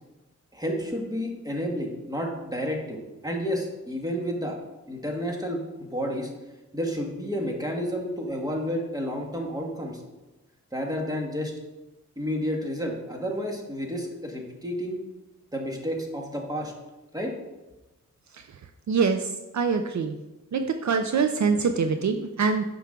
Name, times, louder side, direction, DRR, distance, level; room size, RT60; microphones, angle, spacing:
voice 1, 0.5-4.6 4.9-6.3 6.7-10.0 10.7-11.5 12.2-15.0 15.5-16.7 17.1-17.3, equal, 10° right, 0 dB, 1.7 m, -30 dB
voice 2, 18.9-20.2 20.5-22.6, right 5 dB, 65° right, 7 dB, 0.6 m, -24 dB
10.0 x 6.2 x 3.8 m, 1.0 s
wide cardioid pair, 100°, 31 cm